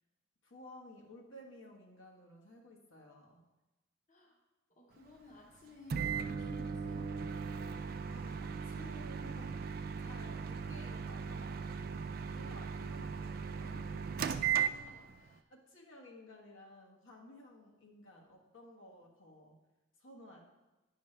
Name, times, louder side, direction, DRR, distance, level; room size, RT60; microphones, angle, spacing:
voice 1, 0.4-3.4 8.0-9.6 10.0-11.7 12.3-14.8 15.5-19.6 20.0-20.4, left 1 dB, 75° left, -1 dB, 1.3 m, -55 dB
voice 2, 4.7-7.1 14.3-15.5, left 1 dB, 35° left, -1 dB, 1.0 m, -56 dB
Microwave oven, 5.9-15.3, right 6 dB, 45° right, 0.3 m, -37 dB
9.8 x 5.6 x 3.3 m, 1.1 s
head